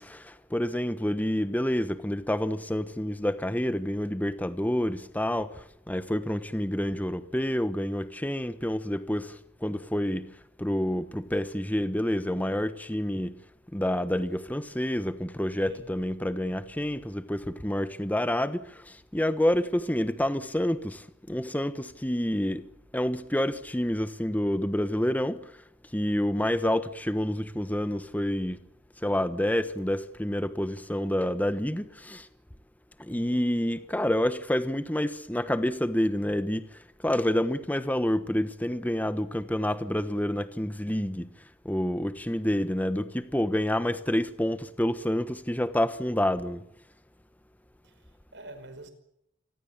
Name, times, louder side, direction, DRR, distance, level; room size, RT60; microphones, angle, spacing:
voice 1, 0.0-10.3 10.6-13.4 13.7-22.7 22.9-25.5 25.9-28.6 29.0-32.3 33.0-41.3 41.6-46.6, left 1 dB, 10° left, 1.1 m, -28 dB
voice 2, 33.1-33.5 47.8-48.9, right 1 dB, 65° right, 5.4 m, -47 dB
27.5 x 20.5 x 7.3 m
head